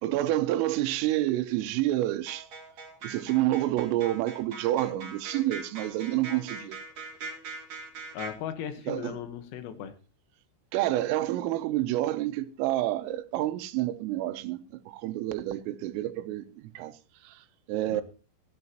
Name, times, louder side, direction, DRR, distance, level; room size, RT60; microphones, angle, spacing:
voice 1, 0.0-2.5 3.0-6.8 8.9-9.2 10.7-16.9 17.2-17.4 17.7-18.0, right 14 dB, 85° right, 3.4 m, -28 dB
sound 1, 2.3-8.3, right 4 dB, 40° right, 3.5 m, -41 dB
voice 2, 8.1-9.9 17.9-18.0, left 9 dB, 80° left, 4.0 m, -37 dB
17.5 x 12.0 x 3.0 m
omnidirectional pair, 6.0 m